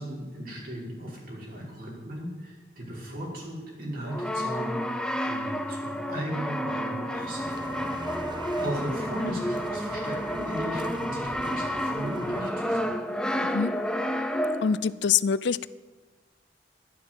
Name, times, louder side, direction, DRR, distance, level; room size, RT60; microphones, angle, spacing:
voice 1, 0.0-8.2 8.6-13.0, equal, 55° right, -3 dB, 5.4 m, -36 dB
Brass instrument, 4.1-14.9, equal, 5° left, 0.8 m, -30 dB
sound 1, 7.1-12.5, right 2 dB, 25° right, 0.7 m, -42 dB
voice 2, 14.6-15.7, left 6 dB, 75° left, 18 dB, 0.5 m, -25 dB
12.5 x 12.0 x 7.9 m, 1.3 s
head